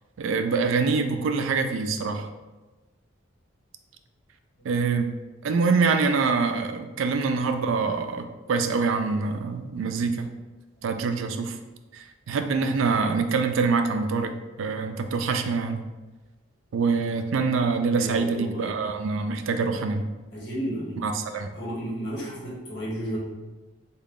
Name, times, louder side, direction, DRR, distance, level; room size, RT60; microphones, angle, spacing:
voice 1, 0.2-2.3 4.7-5.1 5.4-10.3 10.8-11.5 12.3-14.3 14.6-15.8 16.7-20.0 21.0-21.5, right 4 dB, 80° right, 7 dB, 0.3 m, -25 dB
voice 2, 17.9-18.6 20.3-21.0 21.5-23.2, equal, 55° left, -6 dB, 1.1 m, -33 dB
3.7 x 2.2 x 3.6 m, 1.2 s
head